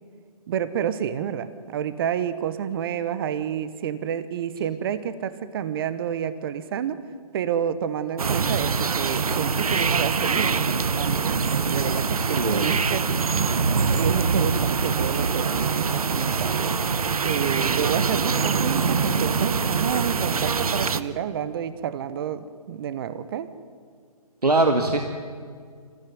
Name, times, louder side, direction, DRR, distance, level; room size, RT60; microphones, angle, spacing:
voice 1, 0.5-7.0 7.3-13.2 13.9-16.6 17.2-23.5, right 9 dB, 35° right, 14 dB, 1.1 m, -29 dB
sound 1, 8.2-21.0, right 5 dB, 70° right, 1.1 m, -24 dB
voice 2, 12.2-12.8 24.4-25.1, right 2 dB, 85° right, 5 dB, 1.9 m, -22 dB
25.5 x 16.0 x 9.6 m, 2.1 s
figure-of-eight pair, 140°, 20 cm